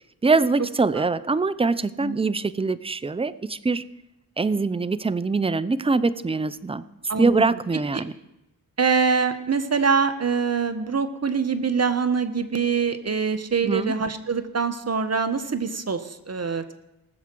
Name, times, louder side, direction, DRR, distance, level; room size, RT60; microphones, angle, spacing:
voice 1, 0.2-3.8 4.4-6.8 7.2-8.1 13.6-13.9, right 3 dB, 15° right, 17 dB, 0.6 m, -23 dB
voice 2, 7.1-7.4 8.8-16.7, right 5 dB, 40° right, 10 dB, 1.3 m, -24 dB
19.5 x 7.3 x 4.7 m, 0.92 s
supercardioid pair, 45°, 40 cm